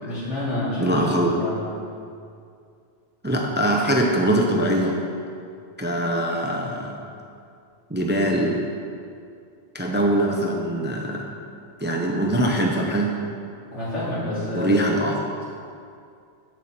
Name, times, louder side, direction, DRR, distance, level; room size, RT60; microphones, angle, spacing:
voice 1, 0.0-1.1 1.3-1.6 9.9-10.0 13.7-14.8, left 1 dB, 85° left, -8 dB, 2.8 m, -28 dB
voice 2, 0.8-1.3 3.2-5.0 5.8-7.0 7.9-8.6 9.7-11.3 11.8-13.1 14.5-15.4, right 1 dB, 10° right, 0 dB, 0.5 m, -22 dB
8.1 x 7.5 x 4.3 m, 2.3 s
omnidirectional pair, 1.2 m